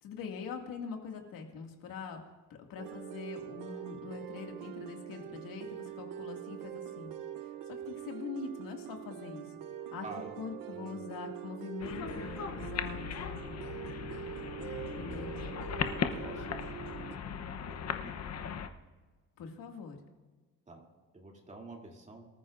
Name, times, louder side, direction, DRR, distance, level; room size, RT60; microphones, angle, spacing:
voice 1, 0.0-7.1 7.4-9.5 9.9-10.1 10.4-13.1 14.9-15.6 19.4-20.0, left 5 dB, 75° left, 2 dB, 2.3 m, -43 dB
sound 1, 2.8-17.2, right 11 dB, 70° right, 0.8 m, -44 dB
voice 2, 10.0-10.3 10.7-11.0 14.7-15.2 16.2-16.6 17.6-18.1 20.7-20.8 21.1-22.3, right 2 dB, 20° right, 0 dB, 3.0 m, -48 dB
sound 2, 11.8-18.7, left 7 dB, 50° left, 1.0 m, -38 dB
24.5 x 14.0 x 2.6 m, 1.3 s
cardioid pair, 130°, 34 cm